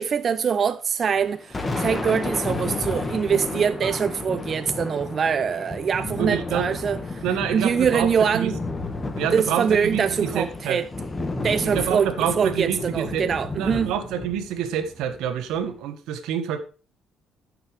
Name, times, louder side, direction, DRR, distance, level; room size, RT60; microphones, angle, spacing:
voice 1, 0.0-7.2 7.5-8.6 9.3-10.9 11.4-13.9, right 7 dB, 45° right, 0.5 m, -23 dB
Thunder, 1.2-15.8, left 2 dB, 25° left, 1.6 m, -32 dB
voice 2, 6.2-6.6 7.2-8.5 9.2-10.8 11.6-13.2 13.6-16.6, right 9 dB, 85° right, 1.4 m, -27 dB
14.5 x 6.7 x 3.4 m
cardioid pair, 95°, 0 cm